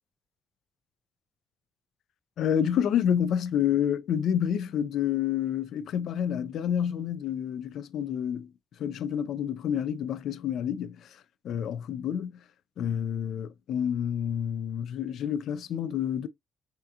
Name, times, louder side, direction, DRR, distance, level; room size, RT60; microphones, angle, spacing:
voice 1, 2.4-8.5 8.8-11.2 11.4-12.4 12.8-16.3, left 9 dB, 75° left, 0.3 m, -29 dB
3.5 x 2.8 x 2.3 m
cardioid pair, 90°, 0 cm